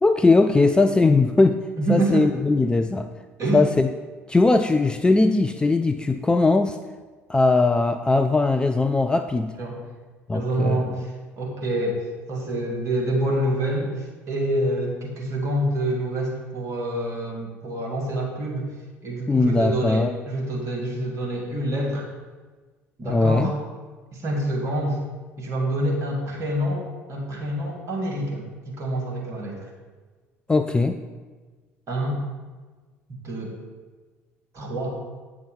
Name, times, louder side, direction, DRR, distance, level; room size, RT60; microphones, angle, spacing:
voice 1, 0.0-1.6 1.9-3.1 3.5-3.9 4.3-6.8 7.3-9.5 10.3-11.0 19.3-20.1 23.0-23.5 30.5-31.0, left 3 dB, 10° left, 7 dB, 0.4 m, -19 dB
voice 2, 1.8-2.3 3.4-3.7 9.6-9.8 10.3-18.7 19.0-22.1 23.0-23.5 24.1-25.0 25.4-29.7 31.9-32.2 33.2-33.6 34.5-34.9, right 1 dB, 40° right, -1 dB, 2.4 m, -27 dB
8.7 x 5.9 x 5.3 m, 1.4 s
figure-of-eight pair, 60°, 8 cm